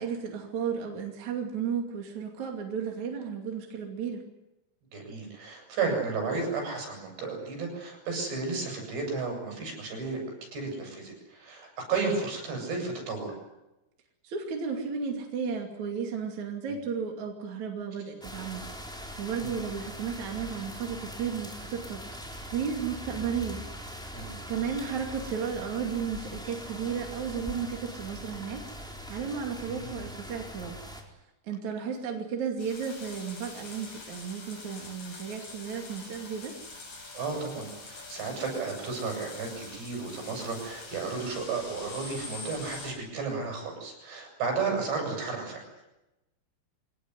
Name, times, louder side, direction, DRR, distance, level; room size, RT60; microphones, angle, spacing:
voice 1, 0.0-4.2 14.2-22.0 22.5-23.6 23.9-24.0 24.5-30.8 31.4-36.6, right 6 dB, 45° right, 2 dB, 3.5 m, -34 dB
voice 2, 4.9-10.2 10.5-13.3 16.7-16.8 19.4-19.5 24.1-24.3 29.6-30.0 37.1-45.6, right 4 dB, 65° right, 2 dB, 10.0 m, -33 dB
sound 1, 18.2-31.0, equal, ahead, 3.2 m, -42 dB
sound 2, 32.6-42.9, left 3 dB, 70° left, 10.0 m, -44 dB
24.0 x 19.0 x 9.7 m, 0.95 s
omnidirectional pair, 5.2 m